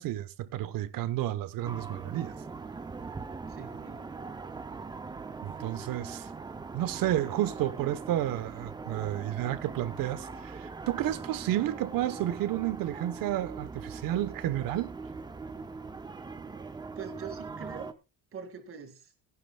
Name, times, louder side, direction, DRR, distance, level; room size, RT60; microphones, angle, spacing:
voice 1, 0.0-2.3 5.4-6.3 6.7-14.9, right 13 dB, 60° right, 1.1 m, -31 dB
sound 1, 1.6-17.9, right 4 dB, 10° right, 0.5 m, -41 dB
voice 2, 3.5-4.1 17.0-17.9 18.3-19.1, right 6 dB, 35° right, 2.1 m, -43 dB
19.0 x 11.0 x 2.3 m
cardioid pair, 160°, 38 cm